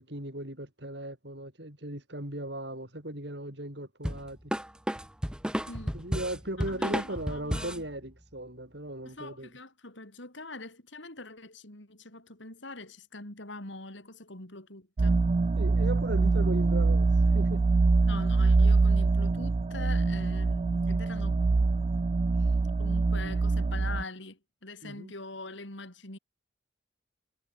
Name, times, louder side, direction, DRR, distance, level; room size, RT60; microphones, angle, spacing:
voice 1, 0.0-4.5 5.9-9.5 15.6-17.7 24.8-25.1, right 1 dB, 60° right, 6.4 m, -37 dB
sound 1, 4.0-7.9, equal, 5° right, 1.4 m, -32 dB
voice 2, 6.7-7.8 9.0-15.2 18.1-21.4 22.8-26.2, left 2 dB, 75° left, 4.8 m, -44 dB
sound 2, 15.0-24.0, right 3 dB, 30° right, 0.3 m, -24 dB
head